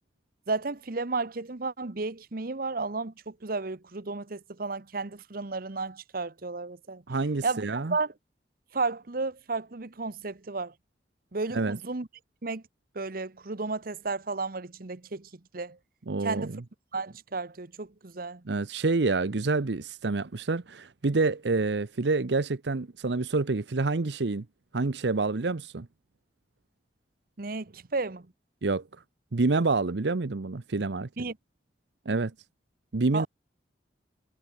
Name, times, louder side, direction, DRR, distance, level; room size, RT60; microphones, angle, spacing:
voice 1, 0.5-7.0 7.4-8.1 8.7-10.7 11.3-12.1 12.4-12.6 12.9-15.8 16.2-16.6 16.9-18.4 27.4-28.3 31.2-31.4 33.1-33.3, right 3 dB, 55° right, 1.1 m, -33 dB
voice 2, 7.1-7.9 11.5-11.8 16.1-16.6 18.5-24.4 24.7-25.9 28.6-28.8 29.3-31.1 32.1-32.3 32.9-33.3, right 3 dB, 75° right, 0.8 m, -27 dB
head